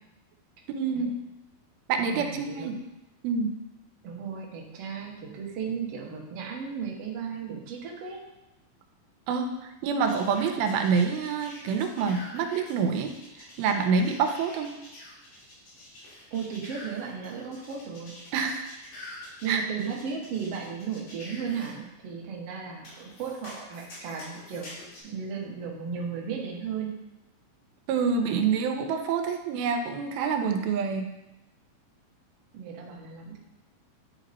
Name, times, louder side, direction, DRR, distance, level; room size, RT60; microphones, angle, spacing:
voice 1, 0.7-1.1 1.9-2.8 3.2-3.6 9.3-13.1 13.4-14.7 18.3-18.7 19.5-19.6 27.9-31.1, right 5 dB, 90° right, 4 dB, 2.6 m, -27 dB
voice 2, 2.1-2.7 4.0-8.2 16.3-18.2 19.4-24.7 25.0-26.9 32.5-33.4, right 6 dB, 65° right, -2 dB, 1.6 m, -35 dB
sound 1, 10.1-21.7 22.8-25.0, left 1 dB, 65° left, 3.9 m, -47 dB
9.8 x 4.2 x 4.1 m, 0.95 s
omnidirectional pair, 4.3 m